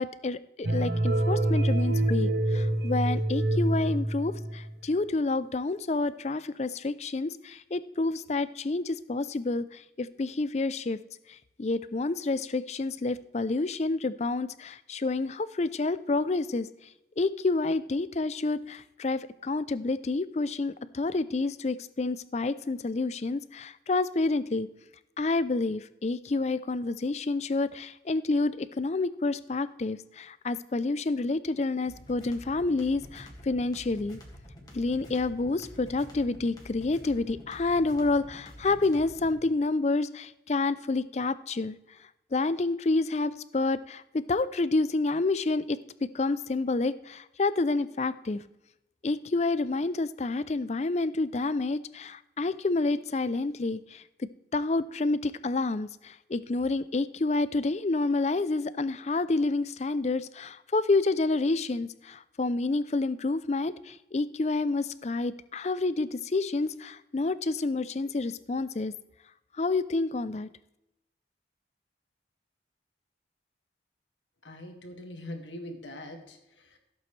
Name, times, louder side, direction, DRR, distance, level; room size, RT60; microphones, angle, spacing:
voice 1, 0.0-11.0 11.3-16.7 17.2-24.7 25.2-34.2 34.7-41.8 42.3-48.4 49.0-54.0 54.5-68.9 69.6-70.5, left 3 dB, 35° left, 15 dB, 0.4 m, -29 dB
sound 1, 0.6-4.7, right 1 dB, 60° right, 0.8 m, -26 dB
sound 2, 31.8-39.4, equal, 20° left, 2.0 m, -48 dB
voice 2, 74.4-76.8, left 1 dB, 85° left, 4 dB, 1.9 m, -42 dB
15.5 x 8.2 x 3.2 m, 0.89 s
head